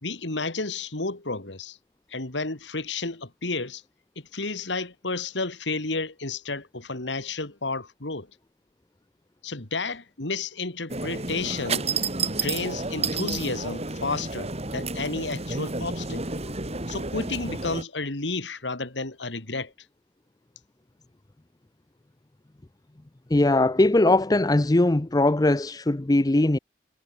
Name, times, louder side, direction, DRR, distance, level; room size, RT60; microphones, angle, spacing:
voice 1, 0.0-1.8 2.1-3.8 4.3-8.3 9.4-11.9 12.4-16.2 16.9-19.7, left 3 dB, 85° left, 2.7 m, -31 dB
sound 1, 10.9-17.8, right 3 dB, 35° right, 4.3 m, -30 dB
voice 2, 23.3-26.6, left 2 dB, 20° left, 0.6 m, -20 dB
head